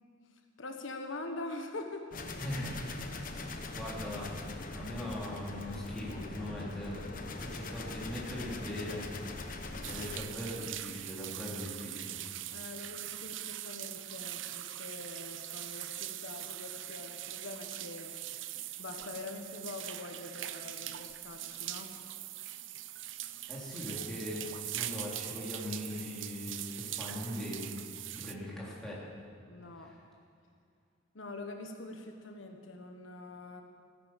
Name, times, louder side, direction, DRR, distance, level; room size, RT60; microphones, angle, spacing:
voice 1, 0.6-2.1 4.1-4.2 12.5-18.1 18.8-22.0 29.5-29.9 31.1-33.6, left 2 dB, 80° left, 4 dB, 1.3 m, -44 dB
sound 1, 2.1-10.2, left 2 dB, 45° left, 1.1 m, -42 dB
voice 2, 2.4-4.4 4.7-7.1 7.4-9.1 9.9-12.2 23.5-27.7 28.2-29.0 29.8-30.0, left 1 dB, 5° left, -7 dB, 3.6 m, -40 dB
sound 2, 9.8-28.3, right 13 dB, 75° right, 0.6 m, -42 dB
16.0 x 11.0 x 7.6 m, 2.3 s
head